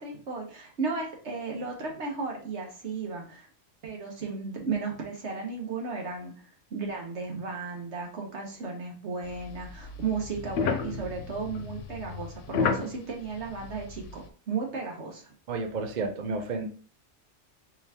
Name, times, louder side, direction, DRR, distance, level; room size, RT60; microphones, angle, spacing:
voice 1, 0.0-3.5 3.8-15.3, right 4 dB, 70° right, 1 dB, 1.4 m, -35 dB
sound 1, 9.2-14.3, left 5 dB, 90° left, 0.9 m, -33 dB
voice 2, 15.5-16.6, right 4 dB, 50° right, 5 dB, 0.6 m, -31 dB
4.4 x 3.5 x 2.8 m, 0.41 s
omnidirectional pair, 1.2 m